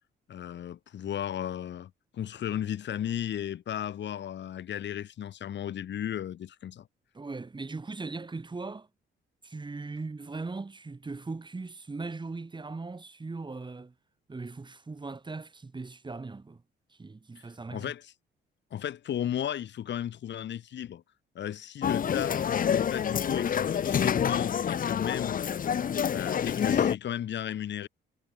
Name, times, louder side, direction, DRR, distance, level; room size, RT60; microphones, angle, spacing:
voice 1, 0.3-6.9 17.7-18.1 18.7-21.0 21.3-25.5 26.1-27.9, left 10 dB, 65° left, 3.1 m, -35 dB
voice 2, 7.1-8.9 9.4-13.9 14.3-16.6 16.9-17.9, right 3 dB, 25° right, 3.4 m, -39 dB
sound 1, 21.8-27.0, left 8 dB, 45° left, 0.9 m, -27 dB
cardioid pair, 90°, 20 cm